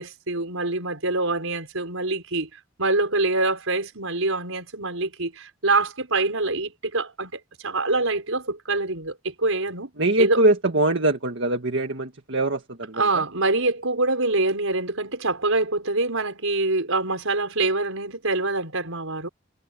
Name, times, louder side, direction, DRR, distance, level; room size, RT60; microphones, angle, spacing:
voice 1, 0.0-2.5 2.8-9.9 10.2-10.4 12.9-19.3, right 2 dB, 75° right, 5.4 m, -25 dB
voice 2, 10.0-13.2, right 2 dB, 60° right, 1.9 m, -22 dB
head